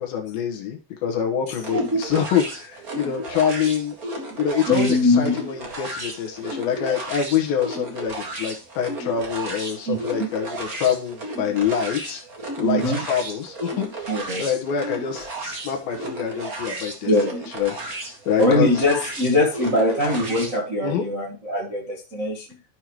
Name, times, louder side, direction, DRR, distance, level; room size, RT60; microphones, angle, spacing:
voice 1, 0.0-3.9 4.4-12.2 12.6-14.1 14.4-17.1 17.5-18.8 20.8-21.0, left 8 dB, 70° left, 2 dB, 2.8 m, -25 dB
sound 1, 1.6-20.6, right 2 dB, 60° right, 0.9 m, -34 dB
voice 2, 4.7-5.3 9.9-10.3 12.6-13.0 14.1-14.4 17.1-17.4 18.4-22.5, left 1 dB, 40° right, -4 dB, 1.1 m, -22 dB
13.0 x 5.6 x 3.1 m, 0.33 s
omnidirectional pair, 5.0 m